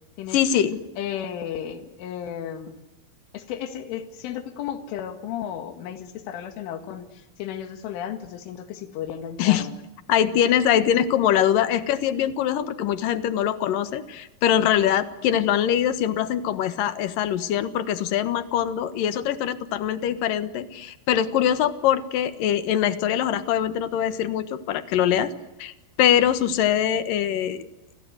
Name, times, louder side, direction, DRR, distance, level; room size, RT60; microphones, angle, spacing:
voice 1, 0.3-0.8 9.4-9.7 10.1-25.3 25.6-25.7 26.0-27.6, left 10 dB, 65° left, 13 dB, 2.4 m, -23 dB
voice 2, 1.0-2.8 3.3-9.7, left 9 dB, 90° left, 9 dB, 4.4 m, -34 dB
29.5 x 23.5 x 8.0 m, 0.99 s
omnidirectional pair, 5.5 m